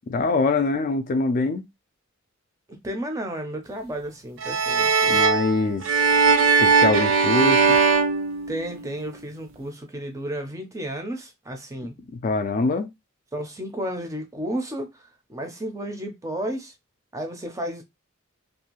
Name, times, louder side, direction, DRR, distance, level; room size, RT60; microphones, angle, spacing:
voice 1, 0.1-1.6 5.1-5.9 6.6-7.8 12.1-12.9, left 3 dB, 40° left, 0.3 m, -24 dB
voice 2, 2.7-5.2 8.5-11.9 13.3-16.7 17.1-17.8, right 1 dB, 15° right, 0.5 m, -32 dB
sound 1, 4.4-9.0, right 4 dB, 70° right, 0.5 m, -20 dB
2.6 x 2.3 x 2.9 m
head